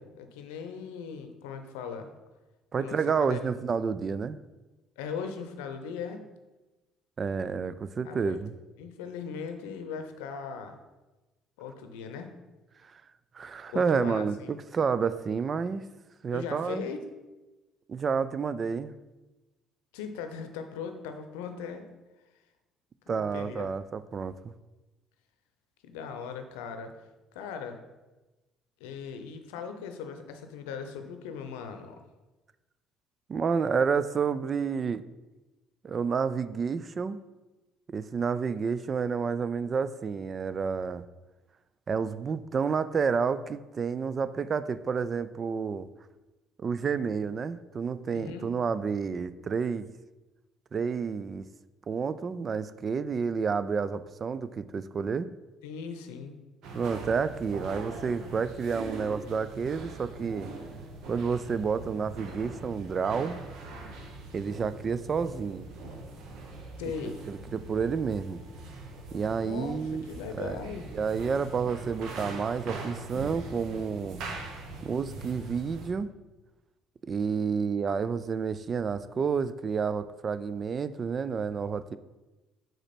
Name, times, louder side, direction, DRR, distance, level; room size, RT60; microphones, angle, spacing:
voice 1, 0.0-2.1 2.8-3.5 5.0-6.2 8.0-8.4 8.8-10.8 11.6-12.3 13.7-14.5 16.3-17.0 19.9-21.9 23.1-23.7 25.8-26.9 27.3-27.8 28.8-32.0 48.1-48.5 55.6-56.4 66.8-67.2 69.4-70.9, left 6 dB, 85° left, 7 dB, 0.6 m, -39 dB
voice 2, 2.7-4.4 7.2-8.5 12.9-13.0 13.3-15.8 16.2-16.9 17.9-18.9 23.1-24.5 33.3-35.0 35.8-37.2 37.9-41.0 41.9-45.9 46.6-49.9 50.7-51.5 51.9-55.3 56.7-60.5 61.1-63.4 64.3-65.7 67.3-68.4 69.1-70.0 70.4-70.6 70.9-74.2 74.8-76.1 77.0-82.0, right 5 dB, 40° right, 14 dB, 0.3 m, -30 dB
sound 1, 56.6-75.9, right 3 dB, 70° right, 1.0 m, -42 dB
6.1 x 5.0 x 4.3 m, 1.1 s
hypercardioid pair, 65°, 0 cm